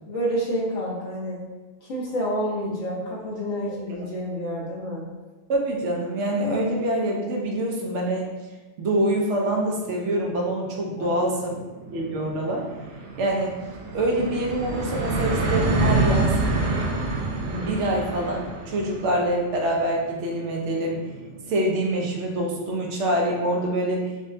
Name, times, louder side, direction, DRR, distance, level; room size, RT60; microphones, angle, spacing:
voice 1, 0.1-1.4 1.8-5.1 11.0-11.3, equal, 85° left, -5 dB, 1.3 m, -29 dB
voice 2, 5.5-8.3 8.8-11.5 11.9-12.7 13.2-13.6 13.9-16.3 17.5-21.0 21.5-24.1, right 1 dB, 75° right, 0 dB, 1.0 m, -25 dB
sound 1, 10.0-10.1 10.4-10.5 10.8-22.2, right 2 dB, 55° right, 0.6 m, -28 dB
4.9 x 2.1 x 2.6 m, 1.2 s
omnidirectional pair, 1.2 m